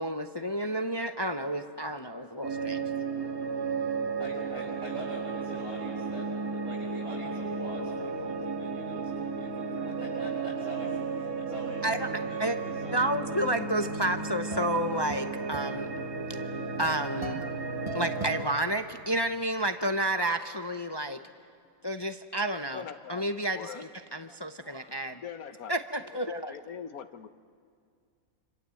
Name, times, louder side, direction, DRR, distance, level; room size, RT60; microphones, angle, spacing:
voice 1, 0.0-2.8 11.8-12.1 12.4-12.6 12.9-15.9 16.8-17.4 17.9-21.2 21.8-22.8 23.1-25.2 25.7-26.5, right 1 dB, 25° left, 7 dB, 0.5 m, -30 dB
sound 1, 2.4-18.4, right 4 dB, 80° right, 2.5 m, -34 dB
voice 2, 4.2-13.7, right 1 dB, 60° right, -6 dB, 5.5 m, -44 dB
sound 2, 13.9-19.3, right 2 dB, 25° right, 1.0 m, -43 dB
voice 3, 22.7-23.2 23.5-23.8 25.2-25.7 26.5-27.3, left 8 dB, 80° left, 10 dB, 1.5 m, -41 dB
27.0 x 26.5 x 7.7 m, 2.2 s
omnidirectional pair, 1.5 m